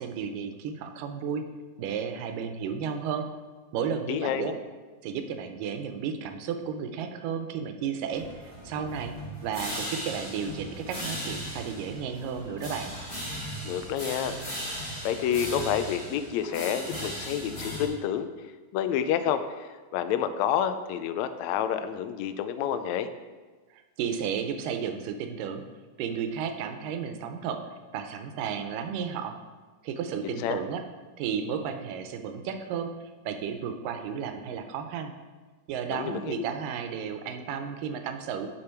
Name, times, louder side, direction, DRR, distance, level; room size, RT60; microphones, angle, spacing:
voice 1, 0.0-1.5 1.8-3.3 3.7-4.5 5.0-9.1 9.4-12.9 23.7-25.6 26.0-27.6 27.9-29.4 29.8-30.8 31.2-32.9 33.3-35.1 35.7-38.6, right 7 dB, 85° right, 7 dB, 2.4 m, -33 dB
voice 2, 4.1-4.5 13.6-14.4 15.0-18.3 18.7-23.1 30.2-30.6 35.9-36.5, left 9 dB, 80° left, 10 dB, 1.6 m, -29 dB
sound 1, 8.1-17.9, equal, 20° left, 2.5 m, -37 dB
9.8 x 7.0 x 4.4 m, 1.3 s
omnidirectional pair, 3.8 m